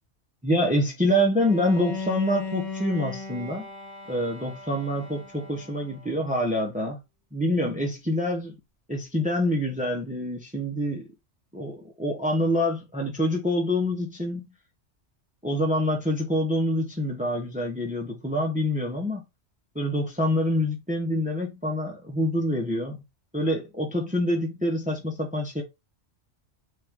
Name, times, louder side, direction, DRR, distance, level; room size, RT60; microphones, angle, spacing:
voice 1, 0.4-3.7 4.1-7.0 7.3-8.6 8.9-11.1 11.5-14.4 15.4-19.2 19.7-23.0 23.3-25.6, equal, 10° right, 0.9 m, -26 dB
Bowed string instrument, 1.4-6.4, left 4 dB, 30° left, 1.3 m, -37 dB
5.3 x 2.7 x 3.6 m
omnidirectional pair, 1.2 m